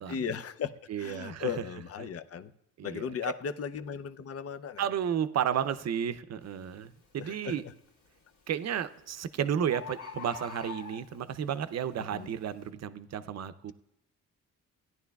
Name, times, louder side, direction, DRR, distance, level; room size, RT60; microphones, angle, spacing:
voice 1, 0.1-2.5 2.8-4.9 7.2-7.7 12.0-12.3, left 7 dB, 45° left, 11 dB, 0.6 m, -37 dB
voice 2, 0.9-1.5 2.8-3.1 4.8-7.6 8.5-13.7, right 9 dB, 50° right, 12 dB, 0.6 m, -32 dB
Bird, 6.4-6.7 7.2-7.7 8.7-8.8 9.1-9.2 9.3-9.4 9.7-11.4 12.0-12.1, left 6 dB, 75° left, 2.2 m, -43 dB
17.0 x 10.5 x 2.3 m, 0.82 s
cardioid pair, 110°, 33 cm